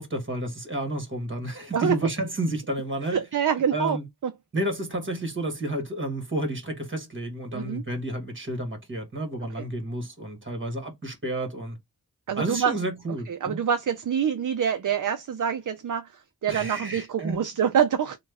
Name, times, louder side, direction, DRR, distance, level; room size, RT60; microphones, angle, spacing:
voice 1, 0.0-3.2 3.7-4.0 4.5-11.8 12.4-13.6 16.5-17.4, right 1 dB, 30° right, 1.5 m, -31 dB
voice 2, 3.1-4.0 4.2-4.3 7.5-7.8 9.6-9.7 12.3-12.7 13.3-16.1 16.4-18.2, right 8 dB, 55° right, 0.5 m, -25 dB
3.0 x 2.3 x 3.5 m
cardioid pair, 45°, 37 cm